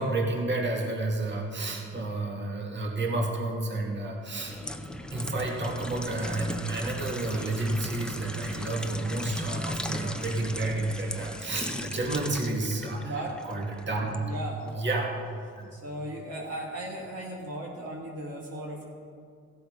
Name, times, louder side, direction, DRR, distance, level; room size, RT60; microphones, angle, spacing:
voice 1, 0.0-4.6 5.1-13.1 13.5-14.2 14.7-15.1 15.6-15.7, right 2 dB, 40° right, 0 dB, 2.2 m, -30 dB
sound 1, 4.3-14.2 14.7-14.9, left 1 dB, 5° left, 0.7 m, -37 dB
voice 2, 13.0-13.4 14.2-14.8 15.7-18.8, right 1 dB, 55° right, -3 dB, 2.0 m, -37 dB
15.5 x 7.8 x 5.2 m, 2.3 s
cardioid pair, 90°, 30 cm